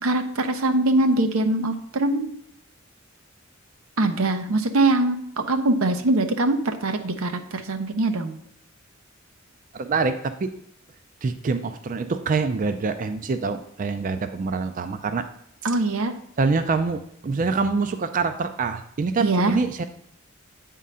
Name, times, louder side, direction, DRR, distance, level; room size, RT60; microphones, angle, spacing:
voice 1, 0.0-2.3 4.0-8.3 15.6-16.1 19.2-19.5, right 2 dB, 90° right, 8 dB, 0.8 m, -22 dB
voice 2, 9.7-10.5 11.2-15.3 15.6-15.7 16.4-19.8, right 4 dB, 40° right, 9 dB, 0.4 m, -25 dB
8.4 x 3.7 x 5.5 m, 0.73 s
head